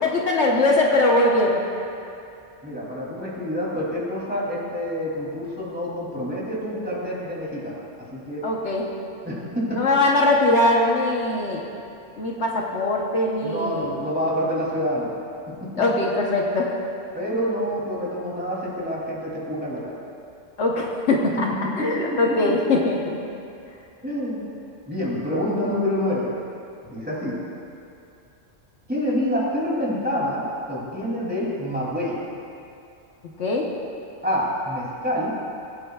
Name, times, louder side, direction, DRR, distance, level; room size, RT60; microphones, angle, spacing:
voice 1, 0.0-1.6 8.4-8.8 9.7-11.6 12.2-13.9 15.8-16.7 20.6-21.5 21.8-23.2 33.4-33.6, left 2 dB, 70° left, -1 dB, 1.3 m, -21 dB
voice 2, 2.6-7.8 8.1-8.4 9.2-9.8 13.4-15.2 15.5-15.7 17.1-19.9 21.8-22.2 24.0-24.4 24.9-26.4 26.9-27.3 28.9-32.2 34.2-35.3, equal, 10° right, -7 dB, 2.8 m, -27 dB
21.0 x 9.1 x 2.4 m, 2.6 s
omnidirectional pair, 1.2 m